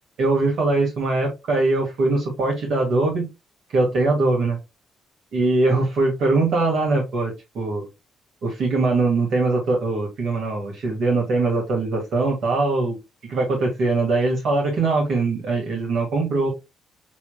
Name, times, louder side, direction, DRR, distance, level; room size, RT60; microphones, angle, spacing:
voice 1, 0.2-3.3 3.7-4.6 5.3-7.9 8.4-13.0 13.3-16.5, right 3 dB, 70° right, -1 dB, 1.9 m, -21 dB
6.8 x 3.3 x 2.3 m, 0.22 s
cardioid pair, 90°, 0 cm